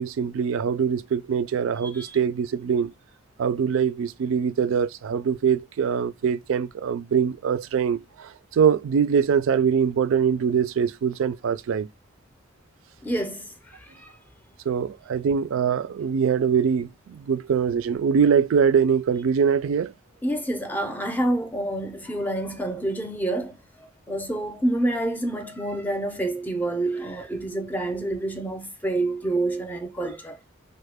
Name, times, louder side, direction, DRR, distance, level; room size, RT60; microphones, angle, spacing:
voice 1, 0.0-2.9 3.4-11.9 14.7-19.9, right 7 dB, 75° right, 0.3 m, -23 dB
voice 2, 1.8-2.2 13.0-14.1 20.2-30.4, right 1 dB, 10° left, 0.5 m, -28 dB
3.1 x 2.1 x 3.4 m
head